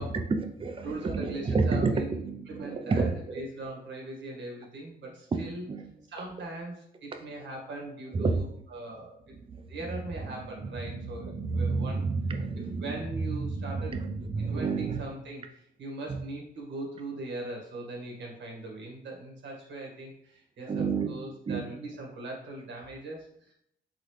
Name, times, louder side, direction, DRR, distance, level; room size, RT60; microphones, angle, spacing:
voice 1, 0.0-3.4 5.3-5.4 5.7-5.9 7.1-7.2 8.1-8.4 9.3-9.7 10.3-15.0 16.1-16.2 20.7-21.1 21.5-21.6, right 4 dB, 25° right, 0.5 m, -30 dB
voice 2, 0.8-2.2 2.5-5.6 6.1-6.7 7.0-9.2 9.7-12.0 12.8-13.9 14.4-15.4 15.8-23.5, right 2 dB, 65° right, 1.6 m, -40 dB
4.1 x 3.8 x 3.2 m
cardioid pair, 90°, 20 cm